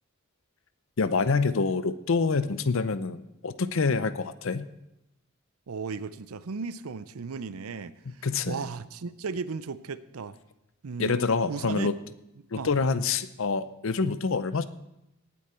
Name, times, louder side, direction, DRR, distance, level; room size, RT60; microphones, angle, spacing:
voice 1, 1.0-4.7 8.2-8.6 11.0-12.0 12.5-14.7, left 4 dB, 65° left, 13 dB, 0.6 m, -26 dB
voice 2, 5.7-10.4 10.8-11.2 11.5-11.9 12.5-12.7, right 5 dB, 85° right, 15 dB, 0.6 m, -36 dB
18.0 x 8.6 x 4.4 m, 0.88 s
head